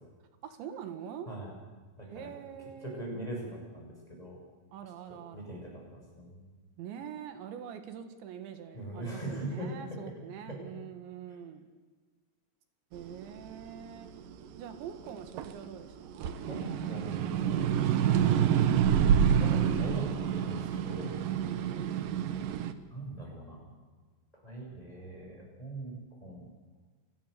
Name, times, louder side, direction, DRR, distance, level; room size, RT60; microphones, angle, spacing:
voice 1, 0.4-1.4 2.1-3.1 4.7-5.6 6.8-11.7 12.9-14.1 14.6-16.3 18.0-18.7 21.3-22.2, right 9 dB, 85° right, 8 dB, 4.0 m, -44 dB
voice 2, 2.0-2.3 2.8-4.4 5.3-6.4 8.7-10.0 10.5-10.6 16.4-18.6 19.4-21.1 22.9-23.7 24.3-26.5, right 1 dB, 10° left, -1 dB, 7.0 m, -41 dB
sound 1, 13.1-15.7 16.1-22.7, right 9 dB, 70° right, 2.3 m, -27 dB
28.0 x 20.0 x 6.9 m, 1.4 s
omnidirectional pair, 5.1 m